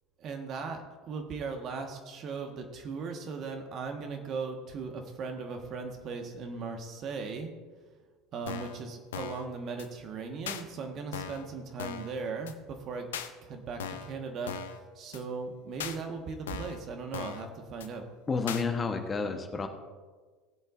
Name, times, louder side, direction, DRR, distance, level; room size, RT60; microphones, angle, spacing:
voice 1, 0.2-7.5 8.3-13.1 13.4-18.1, right 4 dB, 45° right, 4 dB, 1.4 m, -38 dB
sound 1, 8.5-8.8 9.1-9.4 9.8-9.9 10.5-10.6 11.1-11.5 11.8-12.1 12.5-12.6 13.1-13.3 13.8-14.1 14.5-14.8 15.1-15.2 15.8-16.0 16.5-16.8 17.1-17.5 17.8-17.9 18.5-18.6, left 9 dB, 80° left, 0.6 m, -38 dB
voice 2, 18.3-19.7, left 4 dB, 25° left, 5 dB, 1.1 m, -30 dB
18.0 x 8.0 x 2.6 m, 1.4 s
hypercardioid pair, 75°, 0 cm